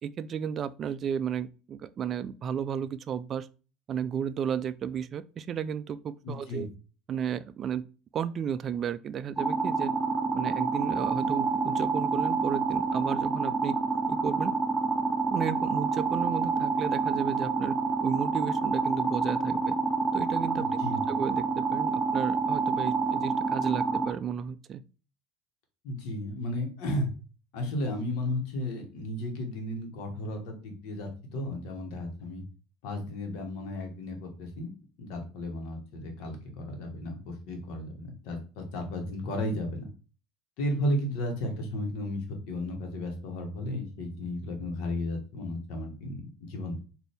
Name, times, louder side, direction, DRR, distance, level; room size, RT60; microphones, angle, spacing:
voice 1, 0.0-3.5 3.9-6.7 7.1-7.8 8.1-9.9 10.3-13.7 14.1-14.5 15.3-17.8 18.0-19.7 20.1-20.8 21.1-24.8, right 8 dB, 40° right, 0.3 m, -33 dB
voice 2, 6.2-6.7 20.6-21.0 25.8-27.1 27.5-32.4 32.8-39.9 40.6-46.8, left 1 dB, 70° left, 1.3 m, -34 dB
sound 1, 9.4-24.1, right 4 dB, 5° right, 0.7 m, -28 dB
4.0 x 2.6 x 3.4 m
supercardioid pair, 95°, 0 cm